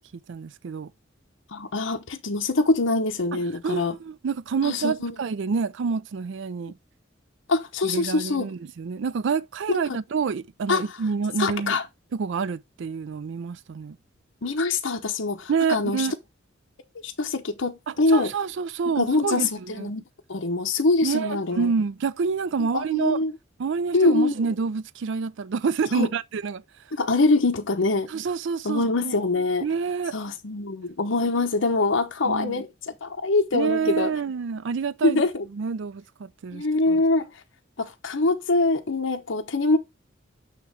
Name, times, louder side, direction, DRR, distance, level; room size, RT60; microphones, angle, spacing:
voice 1, 0.3-0.9 3.3-6.7 7.8-11.8 12.1-14.0 15.5-16.1 17.9-19.9 21.0-23.3 23.6-26.6 28.1-29.3 29.6-30.2 32.2-32.6 33.5-35.2 35.5-37.0, right 5 dB, 65° right, 0.4 m, -28 dB
voice 2, 1.5-3.9 4.6-5.1 7.5-8.5 9.7-10.0 10.7-10.8 11.4-11.8 14.4-16.1 17.0-18.3 18.9-20.0 20.3-21.7 22.6-23.3 23.9-24.3 25.9-26.1 26.9-28.1 28.6-29.6 30.1-32.7 33.0-34.1 35.0-35.4 36.5-37.3 37.8-39.8, left 3 dB, 75° left, 0.9 m, -24 dB
8.5 x 3.0 x 4.9 m
head